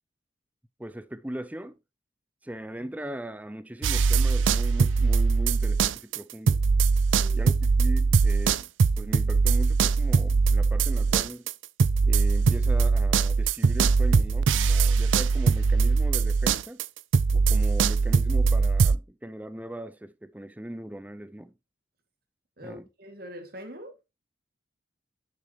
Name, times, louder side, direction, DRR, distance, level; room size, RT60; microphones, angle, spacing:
voice 1, 0.8-1.8 2.4-6.6 7.3-8.7 9.0-11.4 12.0-16.8 17.3-21.5 22.6-22.9, right 1 dB, 10° right, 0.5 m, -39 dB
sound 1, 3.8-6.2 6.5-19.0, right 4 dB, 80° right, 0.4 m, -22 dB
voice 2, 7.1-7.4 22.6-24.0, equal, 50° right, 2.3 m, -43 dB
10.0 x 7.5 x 3.1 m
head